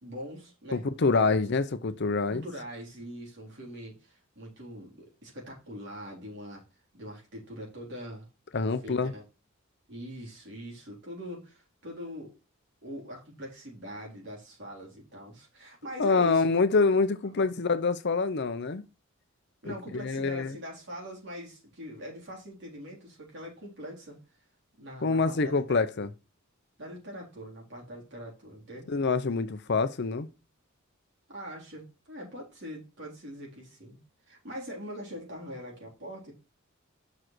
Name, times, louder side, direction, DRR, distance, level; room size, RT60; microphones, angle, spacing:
voice 1, 0.0-0.8 1.3-1.4 2.3-6.6 6.9-8.3 8.8-9.2 9.9-12.4 12.8-16.6 17.3-17.5 19.6-24.2 24.8-26.1 26.8-28.9 31.3-34.0 34.3-36.3, equal, 55° right, 4.0 m, -42 dB
voice 2, 0.7-2.4 8.5-9.1 16.0-18.8 19.7-20.6 25.0-26.1 28.9-30.3, left 4 dB, 55° left, 0.7 m, -26 dB
6.3 x 4.9 x 6.1 m
head